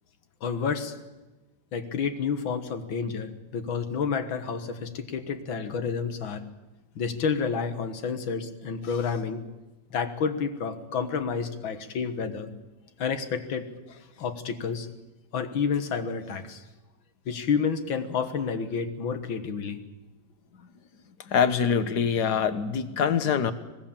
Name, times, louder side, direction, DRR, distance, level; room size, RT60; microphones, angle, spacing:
voice 1, 0.4-0.9 1.7-6.4 7.0-9.4 9.9-12.5 13.0-13.7 14.2-14.9 15.3-16.6 17.3-19.8, left 6 dB, 85° left, 9 dB, 2.2 m, -30 dB
voice 2, 21.2-23.5, left 7 dB, 60° left, 12 dB, 1.7 m, -24 dB
25.0 x 19.5 x 7.3 m, 1.1 s
omnidirectional pair, 2.1 m